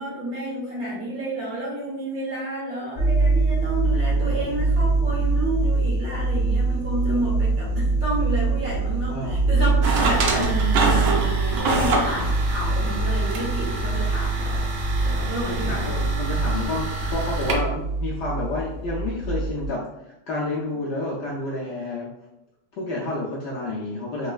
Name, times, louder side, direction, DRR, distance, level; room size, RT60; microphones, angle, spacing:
voice 1, 0.0-14.7 15.0-16.0, right 1 dB, 50° right, -6 dB, 1.4 m, -30 dB
sound 1, 3.0-19.7, right 3 dB, ahead, 0.6 m, -24 dB
sound 2, 9.8-17.5, right 2 dB, 80° right, 0.8 m, -26 dB
voice 2, 15.5-19.8 20.3-22.1 22.8-24.3, left 2 dB, 70° left, -5 dB, 1.0 m, -29 dB
4.0 x 3.0 x 2.3 m, 0.88 s
omnidirectional pair, 2.3 m